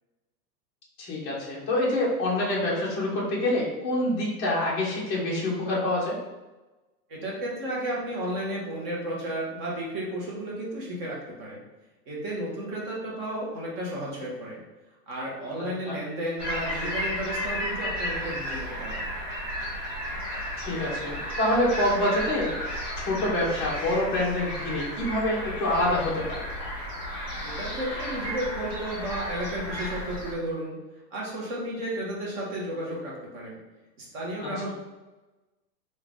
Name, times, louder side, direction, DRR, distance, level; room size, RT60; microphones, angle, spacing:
voice 1, 1.0-6.1 15.6-16.0 20.6-22.5 23.0-26.5 34.4-34.5, left 1 dB, 20° left, -4 dB, 0.8 m, -26 dB
voice 2, 7.1-11.6 12.1-14.6 15.1-19.1 27.4-30.8 31.1-33.6 34.0-34.7, right 1 dB, 25° right, -4 dB, 1.0 m, -33 dB
sound 1, 16.4-30.3, equal, 5° right, 0.5 m, -33 dB
3.7 x 2.6 x 3.5 m, 1.1 s
hypercardioid pair, 150°, 50 cm